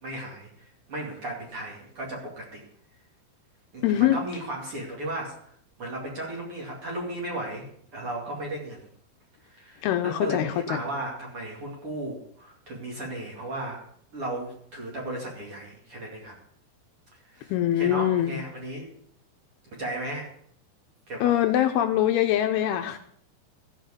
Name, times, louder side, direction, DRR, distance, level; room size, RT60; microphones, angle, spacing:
voice 1, 0.0-2.6 3.7-5.4 5.8-8.9 9.5-13.8 14.1-16.3 17.2-18.9 19.7-20.3 21.1-21.3, right 1 dB, 40° right, -2 dB, 2.7 m, -35 dB
voice 2, 3.8-4.2 9.8-10.8 17.5-18.4 21.2-23.0, left 12 dB, 80° left, 6 dB, 2.4 m, -23 dB
15.0 x 5.1 x 8.2 m, 0.65 s
omnidirectional pair, 4.9 m